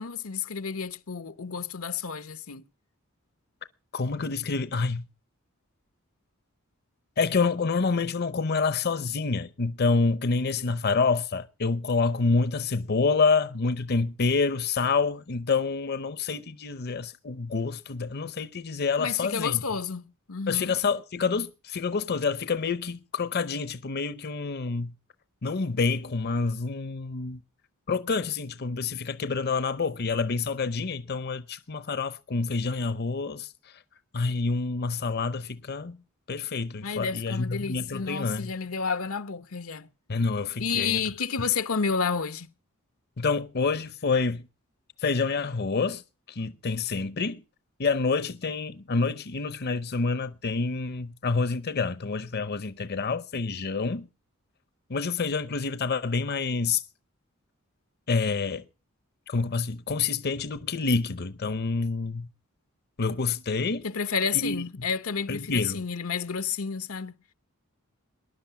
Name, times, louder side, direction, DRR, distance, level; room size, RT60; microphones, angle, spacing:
voice 1, 0.0-2.6 19.0-20.7 36.8-39.9 40.6-42.5 63.8-67.1, left 6 dB, 85° left, 1.0 m, -30 dB
voice 2, 3.9-5.0 7.2-19.6 20.5-24.9 25.4-27.4 27.9-33.7 34.1-36.0 36.3-38.5 40.1-41.0 43.2-44.4 45.0-46.0 46.3-47.4 47.8-54.1 54.9-56.8 58.1-58.6 59.3-62.3 63.0-63.8 64.3-64.6 65.3-65.8, left 4 dB, 50° left, 0.7 m, -27 dB
20.0 x 11.0 x 5.8 m
head